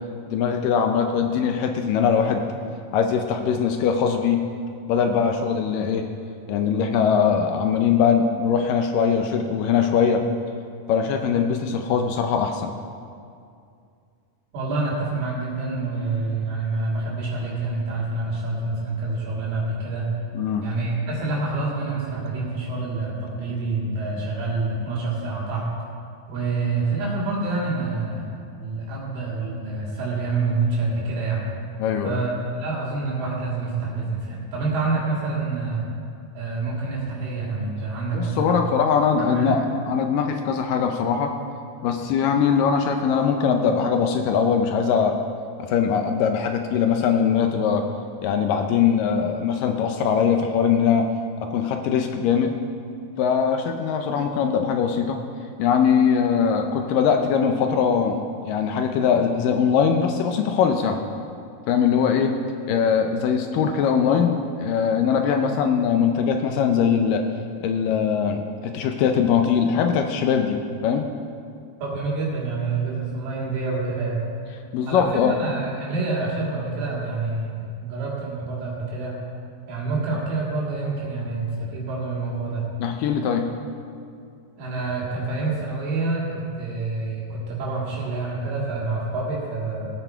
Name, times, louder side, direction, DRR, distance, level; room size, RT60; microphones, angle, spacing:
voice 1, 0.3-4.4 4.9-6.0 6.5-10.2 10.9-12.7 20.3-20.7 31.8-32.2 38.1-41.3 41.8-45.1 45.7-47.8 48.2-51.0 51.4-52.6 53.2-55.2 55.6-61.0 61.7-62.3 62.7-67.2 67.6-70.6 70.8-71.1 74.7-75.4 82.8-83.5, left 7 dB, 80° left, 5 dB, 2.0 m, -21 dB
voice 2, 14.5-20.1 20.6-25.7 26.3-31.5 32.0-32.3 32.6-35.9 36.3-38.6 39.2-39.5 71.8-74.2 74.9-79.2 79.7-82.7 84.6-89.9, right 3 dB, 75° right, -5 dB, 3.9 m, -27 dB
18.0 x 9.1 x 4.5 m, 2.4 s
omnidirectional pair, 4.6 m